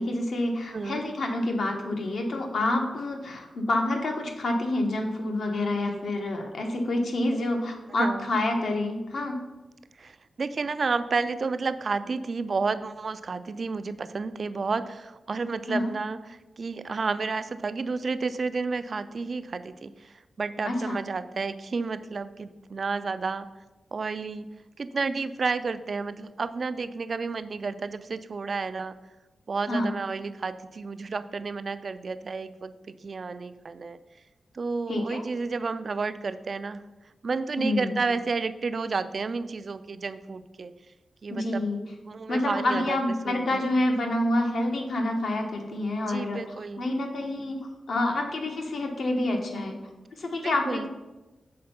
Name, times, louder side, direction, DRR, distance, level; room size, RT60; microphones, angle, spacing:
voice 1, 0.0-9.4 15.7-15.9 20.6-21.0 29.7-29.9 34.9-35.2 37.6-38.0 41.3-41.8 42.3-46.4 46.8-47.6 47.9-49.8 50.2-50.9, left 1 dB, 65° left, 3 dB, 1.1 m, -27 dB
voice 2, 0.7-1.0 5.7-6.0 8.0-8.2 10.0-23.5 23.9-24.5 24.8-29.0 29.5-34.0 34.5-36.8 37.2-40.7 41.2-41.7 42.1-43.0 43.2-43.6 46.1-46.8 50.4-50.9, right 4 dB, 45° right, 13 dB, 0.3 m, -31 dB
6.5 x 4.3 x 5.6 m, 1.1 s
wide cardioid pair, 145°, 0 cm